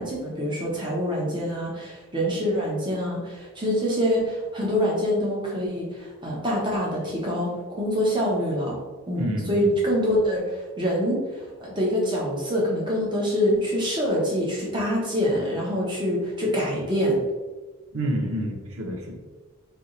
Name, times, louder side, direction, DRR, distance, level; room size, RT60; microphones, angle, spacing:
voice 1, 0.0-7.5 7.8-8.8 9.1-17.2, equal, 20° right, -4 dB, 1.0 m, -25 dB
voice 2, 9.2-9.7 17.9-19.1, right 1 dB, 80° right, 1 dB, 0.8 m, -28 dB
3.6 x 3.0 x 3.8 m, 1.2 s
head